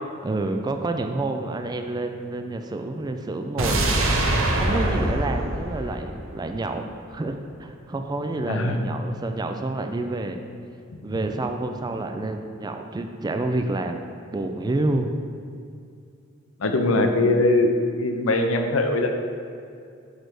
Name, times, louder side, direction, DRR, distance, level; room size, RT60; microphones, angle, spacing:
voice 1, 0.2-4.0 4.5-10.4 11.0-14.0 14.3-15.1, right 2 dB, 20° right, 6 dB, 0.3 m, -28 dB
sound 1, 3.6-6.7 7.0-7.1, right 1 dB, 75° right, 0.9 m, -24 dB
voice 2, 8.5-8.9 11.0-11.1 16.6-19.1, left 2 dB, 90° left, 5 dB, 0.7 m, -21 dB
8.0 x 3.4 x 6.3 m, 2.4 s
head